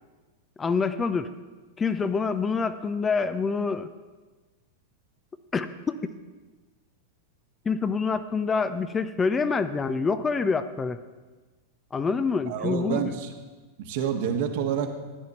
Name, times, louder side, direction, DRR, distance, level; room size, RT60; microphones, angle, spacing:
voice 1, 0.6-1.3 1.8-3.9 5.5-6.0 7.7-11.0 11.9-13.2, left 5 dB, 20° left, 11 dB, 0.6 m, -26 dB
voice 2, 12.5-13.3 13.8-14.9, right 8 dB, 60° right, 4 dB, 1.5 m, -28 dB
13.5 x 9.6 x 4.3 m, 1.3 s
hypercardioid pair, 95°, 0 cm